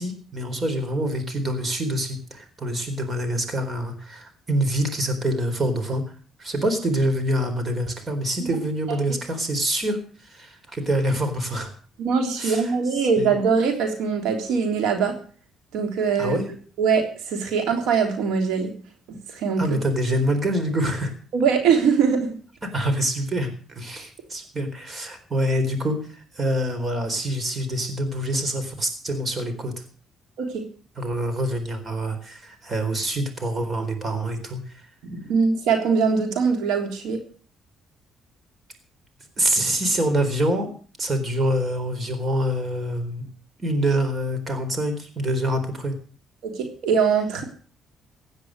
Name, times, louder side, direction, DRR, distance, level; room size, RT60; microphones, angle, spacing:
voice 1, 0.0-6.0 6.4-11.7 12.4-12.7 13.2-13.3 16.2-16.5 19.6-21.1 22.7-26.1 26.3-29.7 31.0-34.6 39.4-40.7 41.0-43.3 43.6-45.9, right 1 dB, 30° right, 8 dB, 4.1 m, -25 dB
voice 2, 12.0-15.1 15.7-16.4 16.8-18.7 19.3-19.8 21.3-22.4 30.4-30.7 35.0-37.2 46.4-47.4, right 5 dB, 85° right, 5 dB, 3.3 m, -22 dB
16.5 x 9.8 x 6.5 m, 0.42 s
cardioid pair, 110°, 0 cm